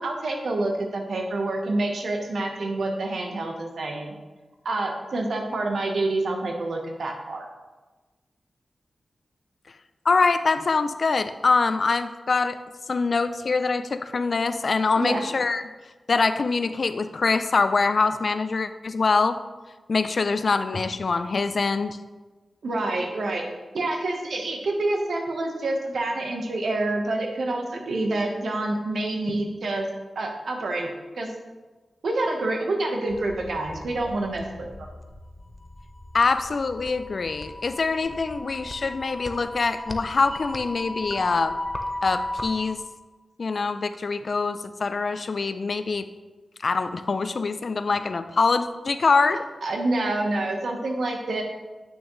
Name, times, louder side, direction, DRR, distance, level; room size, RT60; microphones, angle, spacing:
voice 1, 0.0-4.1 4.6-7.5 15.0-15.2 22.6-23.4 23.7-29.9 30.1-30.9 31.1-31.3 32.0-34.7 49.6-51.4, right 2 dB, 80° right, 2 dB, 1.1 m, -27 dB
voice 2, 10.1-12.6 12.9-15.6 16.1-19.4 19.9-22.0 36.1-41.6 42.0-42.8 43.4-46.1 46.6-49.4, left 4 dB, 65° left, 11 dB, 0.4 m, -24 dB
sound 1, 33.1-42.8, left 1 dB, 20° left, 0.7 m, -36 dB
9.1 x 6.1 x 3.1 m, 1.3 s
cardioid pair, 55°, 0 cm